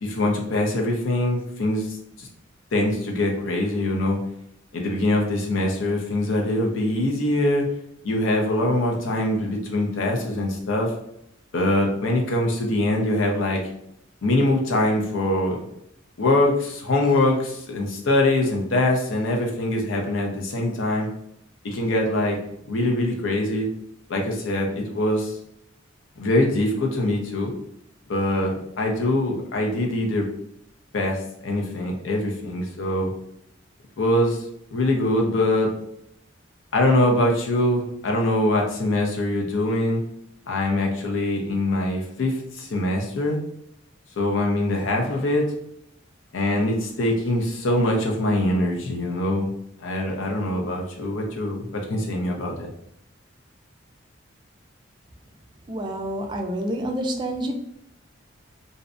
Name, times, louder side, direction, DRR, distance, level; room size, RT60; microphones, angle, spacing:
voice 1, 0.0-2.3 2.7-4.2 4.7-7.7 8.0-10.9 11.5-13.6 14.2-15.6 16.2-21.1 21.6-22.4 22.7-23.7 24.1-25.4 26.2-27.5 28.1-30.3 30.9-33.1 34.0-34.4 34.7-35.7 36.7-40.0 40.5-43.4 44.2-45.5 46.3-49.5 49.8-52.7, left 1 dB, 80° left, 0 dB, 0.6 m, -23 dB
voice 2, 55.7-57.5, right 1 dB, 25° right, 2 dB, 0.3 m, -28 dB
2.6 x 2.1 x 2.5 m, 0.76 s
head